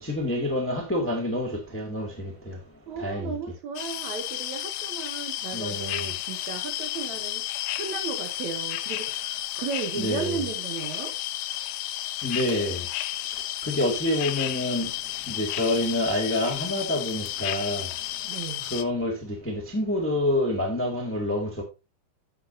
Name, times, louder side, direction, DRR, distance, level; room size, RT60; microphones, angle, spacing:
voice 1, 0.0-2.6 3.0-3.4 5.5-6.1 9.9-10.4 12.2-12.8 13.3-14.9 15.3-17.9 18.7-21.6, left 1 dB, 5° left, 1.2 m, -27 dB
voice 2, 2.9-7.4 7.8-11.1 18.2-18.7, right 6 dB, 65° right, 2.2 m, -35 dB
sound 1, 3.8-18.8, left 15 dB, 80° left, 2.0 m, -32 dB
10.0 x 8.3 x 2.7 m
omnidirectional pair, 3.9 m